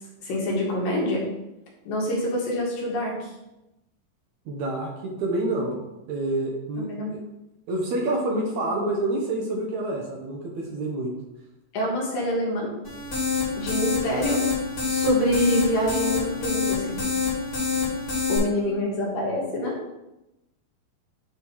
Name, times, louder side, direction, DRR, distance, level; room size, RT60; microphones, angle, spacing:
voice 1, 0.2-1.2 1.9-3.3 6.8-7.1 11.7-12.7 13.6-14.4 14.9-17.0 18.3-19.8, equal, 75° left, -3 dB, 3.3 m, -26 dB
voice 2, 4.5-5.8 6.1-6.9 7.7-11.1, right 2 dB, 65° right, -1 dB, 2.1 m, -27 dB
sound 1, 12.8-18.4, left 5 dB, 30° left, 2.2 m, -27 dB
9.2 x 3.5 x 4.6 m, 0.94 s
omnidirectional pair, 4.0 m